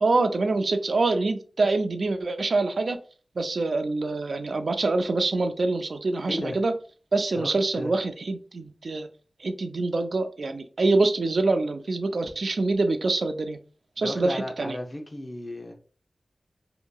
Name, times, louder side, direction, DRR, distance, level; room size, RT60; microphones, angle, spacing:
voice 1, 0.0-3.0 3.4-6.7 7.1-9.1 9.4-13.6 14.0-14.8, right 3 dB, 70° right, 8 dB, 0.3 m, -25 dB
voice 2, 7.3-7.9 14.0-15.7, left 1 dB, 30° left, 2 dB, 0.7 m, -34 dB
2.8 x 2.7 x 2.3 m, 0.39 s
wide cardioid pair, 75°, 0 cm